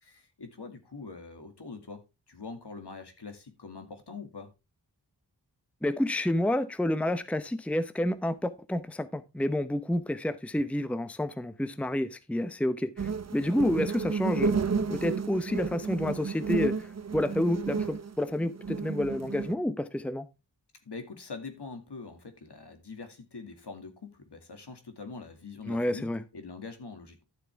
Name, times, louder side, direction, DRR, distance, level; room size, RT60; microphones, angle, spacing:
voice 1, 0.0-4.5 20.8-27.3, left 4 dB, 70° left, 2.3 m, -44 dB
voice 2, 5.8-14.6 14.9-20.3 25.7-26.2, left 1 dB, 5° left, 0.7 m, -29 dB
sound 1, 13.0-19.5, right 5 dB, 40° right, 0.7 m, -32 dB
12.0 x 7.4 x 3.5 m
wide cardioid pair, 70°, 42 cm